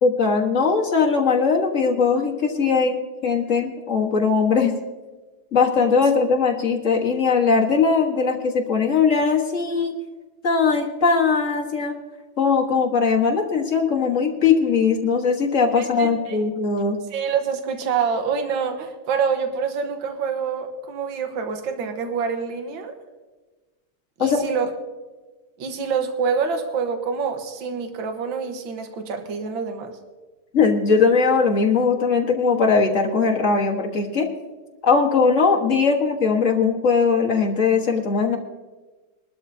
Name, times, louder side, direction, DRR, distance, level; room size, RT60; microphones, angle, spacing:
voice 1, 0.0-3.0 3.2-4.7 5.5-9.9 10.4-11.9 12.4-17.0 24.2-24.4 30.5-34.3 34.8-38.4, left 5 dB, 40° left, 0 dB, 1.6 m, -20 dB
voice 2, 15.8-16.4 17.1-23.0 24.2-24.7 25.6-30.0, right 6 dB, 65° right, 5 dB, 1.9 m, -26 dB
22.5 x 12.5 x 2.7 m, 1.3 s
omnidirectional pair, 2.3 m